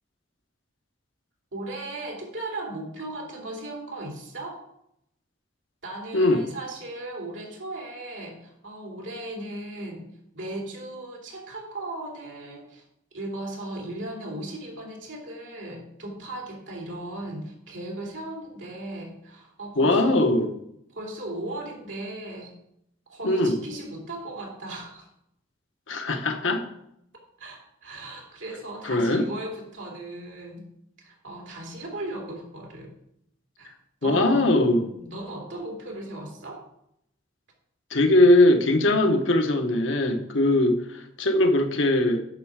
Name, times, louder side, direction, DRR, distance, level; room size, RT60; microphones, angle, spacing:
voice 1, 1.5-4.6 5.8-10.1 10.3-12.8 13.1-20.3 20.9-22.5 23.1-25.1 27.4-30.6 31.0-32.9 33.6-33.7 34.0-34.5 34.9-36.6, right 1 dB, 80° right, 2.8 m, -37 dB
voice 2, 6.1-6.4 19.8-20.5 23.2-23.6 25.9-26.6 28.8-29.3 34.0-34.8 37.9-42.2, left 1 dB, 90° left, 1.1 m, -20 dB
9.5 x 6.4 x 4.7 m
head